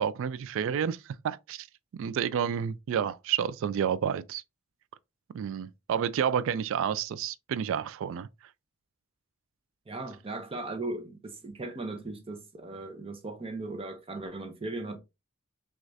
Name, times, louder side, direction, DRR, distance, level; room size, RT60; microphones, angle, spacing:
voice 1, 0.0-1.7 1.9-4.4 5.3-8.3, right 8 dB, 65° right, 0.3 m, -30 dB
voice 2, 9.9-15.0, right 2 dB, 25° right, 0.6 m, -37 dB
6.2 x 2.4 x 2.6 m
head